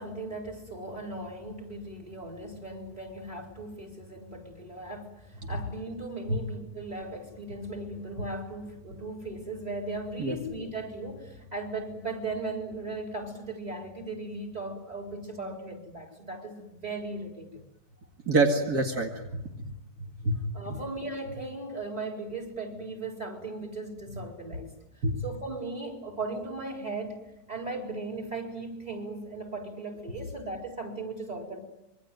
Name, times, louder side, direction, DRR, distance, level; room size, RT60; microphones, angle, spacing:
voice 1, 0.0-17.6 20.5-24.7 25.2-27.2 27.5-31.6, right 2 dB, 25° right, 5 dB, 4.7 m, -37 dB
voice 2, 18.3-19.7 20.2-20.5 25.0-25.2, right 2 dB, 60° right, 2 dB, 2.6 m, -26 dB
26.5 x 24.0 x 9.3 m, 0.90 s
omnidirectional pair, 1.8 m